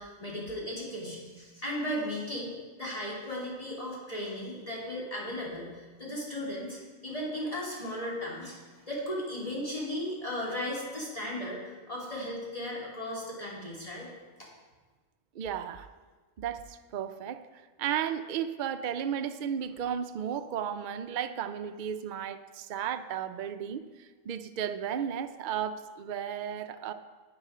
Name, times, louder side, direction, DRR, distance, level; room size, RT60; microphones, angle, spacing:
voice 1, 0.0-2.5 2.8-14.1 14.4-14.5, left 1 dB, 25° left, -5 dB, 3.0 m, -36 dB
voice 2, 15.3-15.9 16.4-26.9, right 9 dB, 75° right, 9 dB, 0.4 m, -34 dB
9.8 x 9.7 x 4.9 m, 1.4 s
omnidirectional pair, 1.4 m